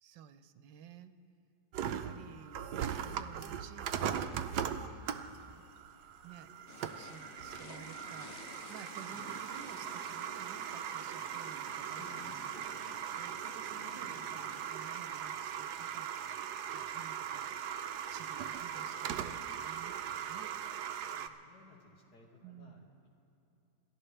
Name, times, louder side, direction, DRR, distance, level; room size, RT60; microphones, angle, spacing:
voice 1, 0.0-1.2 1.8-4.5 5.1-5.7 6.2-12.0 12.4-12.5 12.8-16.1 16.7-17.6 18.1-20.5 22.4-22.8, right 9 dB, 90° right, 11 dB, 1.4 m, -54 dB
sound 1, 1.7-21.3, right 8 dB, 70° right, 1.1 m, -39 dB
sound 2, 6.7-14.7, left 8 dB, 80° left, 0.6 m, -54 dB
voice 2, 12.0-12.3 21.0-23.1, left 4 dB, 65° left, -1 dB, 2.6 m, -58 dB
28.0 x 13.5 x 3.3 m, 2.9 s
omnidirectional pair, 1.9 m